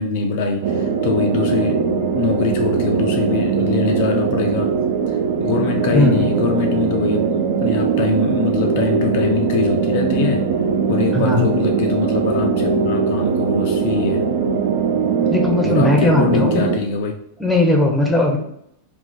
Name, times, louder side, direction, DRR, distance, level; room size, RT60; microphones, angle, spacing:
voice 1, 0.0-4.7 5.4-10.5 10.9-14.3 15.6-17.1, left 5 dB, 50° left, 2 dB, 0.3 m, -23 dB
sound 1, 0.6-16.8, right 5 dB, 55° right, 0.4 m, -20 dB
voice 2, 5.9-6.4 11.1-11.6 15.3-16.6 17.4-18.4, left 1 dB, 5° left, 0 dB, 0.7 m, -18 dB
2.5 x 2.4 x 3.6 m, 0.73 s
figure-of-eight pair, 90°, 0 cm